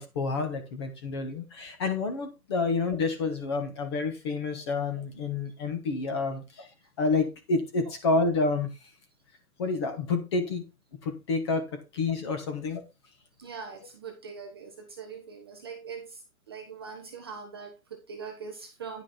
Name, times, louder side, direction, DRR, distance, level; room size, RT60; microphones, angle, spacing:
voice 1, 0.0-6.7 7.0-8.7 9.6-10.6 11.0-11.6 11.9-12.8, left 3 dB, 20° left, 1.1 m, -29 dB
voice 2, 13.4-19.0, right 5 dB, 15° right, 0.8 m, -42 dB
10.0 x 5.8 x 4.3 m
hypercardioid pair, 165°, 45 cm